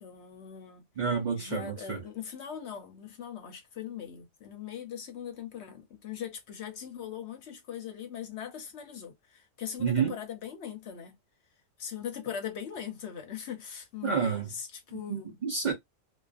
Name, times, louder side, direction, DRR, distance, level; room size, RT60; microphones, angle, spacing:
voice 1, 0.0-0.8 1.4-11.1 11.8-15.3, left 8 dB, 65° left, 0.9 m, -40 dB
voice 2, 1.0-2.0 9.8-10.2 14.0-14.5 14.9-15.7, right 6 dB, 45° right, 0.7 m, -29 dB
2.4 x 2.4 x 2.4 m
omnidirectional pair, 1.3 m